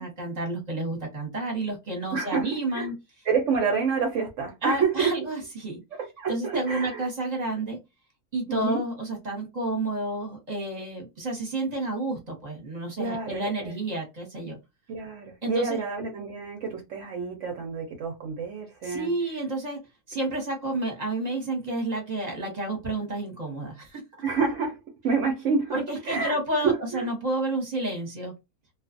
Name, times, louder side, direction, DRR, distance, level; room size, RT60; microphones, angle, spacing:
voice 1, 0.0-2.9 4.6-5.8 6.3-7.8 8.3-14.6 15.4-15.8 18.8-19.8 20.1-24.2 25.7-28.3, right 2 dB, 30° right, 1.0 m, -30 dB
voice 2, 2.1-2.9 3.2-5.1 5.9-7.0 8.5-8.8 13.0-13.7 14.9-19.1 24.2-25.7 26.1-27.1, right 5 dB, 60° right, 0.9 m, -28 dB
2.5 x 2.3 x 2.5 m
omnidirectional pair, 1.6 m